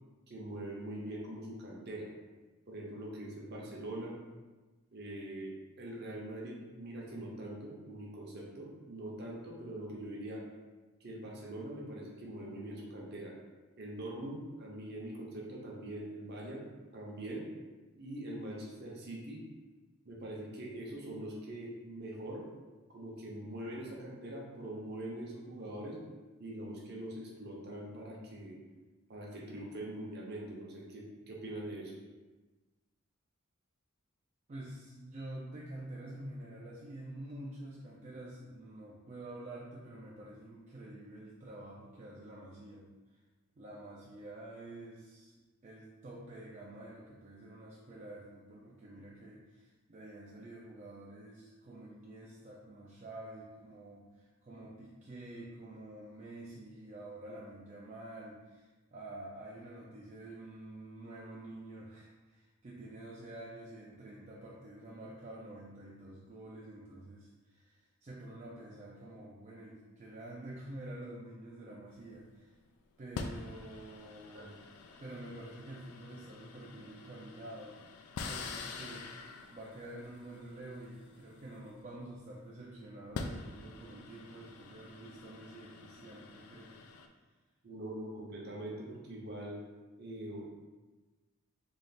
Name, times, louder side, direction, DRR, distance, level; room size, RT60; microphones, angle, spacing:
voice 1, 0.3-2.1 2.7-4.2 4.9-10.4 11.0-13.3 13.8-16.6 16.9-17.5 18.0-19.4 20.0-22.4 22.9-26.0 26.4-28.6 29.1-31.9 74.3-74.5 87.6-89.6 90.0-90.5, right 1 dB, 50° right, -2 dB, 0.7 m, -43 dB
voice 2, 34.5-43.2 43.6-72.5 73.0-74.6 75.0-77.8 78.2-86.8, right 1 dB, 35° right, -4 dB, 0.4 m, -48 dB
sound 1, 71.9-72.2 73.1-82.2 82.9-87.1, left 4 dB, 85° left, 0.4 m, -46 dB
3.2 x 2.4 x 4.0 m, 1.2 s
head